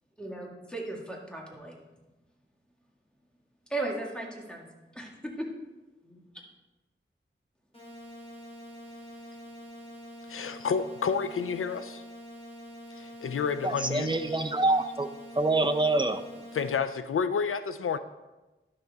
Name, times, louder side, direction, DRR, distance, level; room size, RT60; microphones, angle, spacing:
voice 1, 0.2-1.8 3.7-4.7 4.9-5.5 10.4-10.5, right 2 dB, 5° left, -1 dB, 1.9 m, -36 dB
sound 1, 7.7-16.7, equal, 30° left, 2.8 m, -46 dB
voice 2, 10.3-12.0 12.9-14.4 16.5-18.0, left 6 dB, 80° left, 11 dB, 0.4 m, -30 dB
voice 3, 13.6-15.1 15.4-16.2, right 2 dB, 20° right, 7 dB, 0.7 m, -26 dB
11.5 x 6.5 x 3.5 m, 1.1 s
wide cardioid pair, 65°, 21 cm